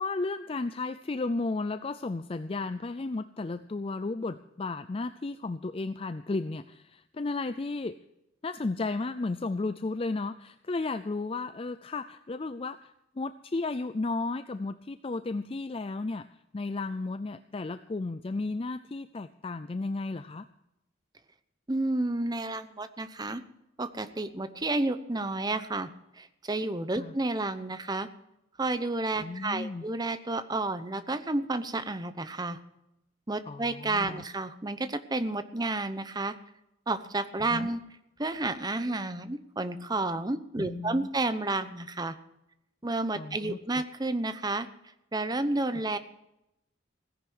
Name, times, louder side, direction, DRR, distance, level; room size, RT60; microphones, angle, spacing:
voice 1, 0.0-8.0 8.4-16.3 16.5-20.5 26.9-27.1 29.2-29.8 33.5-34.2 37.4-37.7 40.6-41.1 43.2-43.8, left 3 dB, 30° left, 11 dB, 0.4 m, -34 dB
voice 2, 21.7-23.4 23.8-25.9 26.1-28.1 28.6-32.6 33.3-36.4 36.9-37.8 38.2-42.1 42.8-44.7 45.1-46.0, right 2 dB, 20° right, 11 dB, 0.8 m, -31 dB
17.0 x 10.5 x 6.2 m, 0.85 s
head